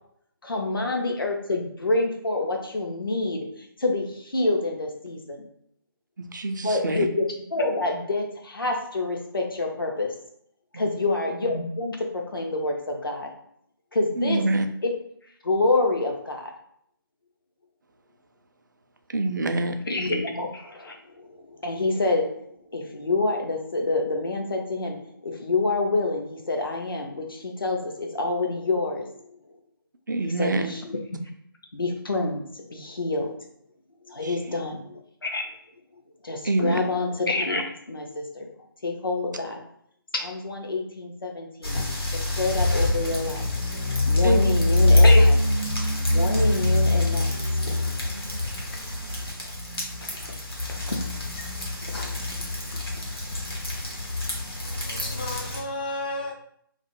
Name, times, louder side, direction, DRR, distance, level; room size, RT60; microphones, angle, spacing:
voice 1, 0.4-3.5 3.8-5.4 6.6-7.3 7.5-10.1 10.7-13.3 13.9-14.4 14.8-14.9 15.4-16.5 19.9-22.3 22.7-29.1 30.2-31.0 31.7-32.4 32.7-33.3 34.1-35.5 36.2-38.5 38.8-39.6 40.1-41.8 42.3-43.4 44.0-45.4 46.1-47.4 49.4-49.5 50.0-50.4 50.7-51.0, left 2 dB, 70° left, 0.6 m, -27 dB
voice 2, 6.2-7.1 10.7-11.0 14.2-14.7 19.1-19.8 30.1-30.8 34.2-34.4 36.4-36.8 44.2-44.4 48.1-48.4, right 2 dB, 55° right, 0.4 m, -26 dB
sound 1, 41.6-55.6, left 2 dB, 90° left, 1.0 m, -24 dB
voice 3, 54.6-56.3, left 2 dB, 25° left, 0.3 m, -33 dB
2.4 x 2.0 x 2.9 m
figure-of-eight pair, 150°, 12 cm